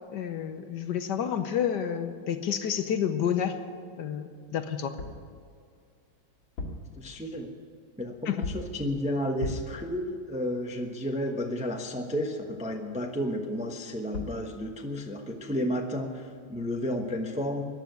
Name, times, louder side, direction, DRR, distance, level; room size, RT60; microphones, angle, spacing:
voice 1, 0.1-3.6 4.0-5.0 8.3-8.4, left 8 dB, 65° left, 8 dB, 1.3 m, -29 dB
sound 1, 5.0-5.3 6.4-7.0 8.4-8.8 9.4-9.8 13.8-13.9 14.1-14.5, left 2 dB, 90° left, 2.7 m, -36 dB
voice 2, 7.0-7.5 8.0-17.6, equal, 5° right, 3 dB, 0.6 m, -32 dB
14.5 x 10.0 x 9.3 m, 2.2 s
omnidirectional pair, 2.2 m